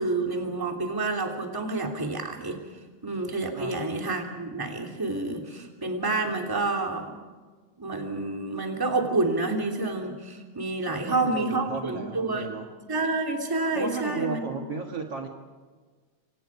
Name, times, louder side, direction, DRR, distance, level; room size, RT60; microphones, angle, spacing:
voice 1, 0.0-2.6 3.0-7.1 7.8-12.5 12.9-14.4, right 2 dB, 5° right, 2 dB, 2.7 m, -28 dB
voice 2, 10.9-12.7 13.8-15.3, right 5 dB, 50° right, 2 dB, 2.4 m, -34 dB
28.0 x 26.0 x 4.9 m, 1.4 s
omnidirectional pair, 3.7 m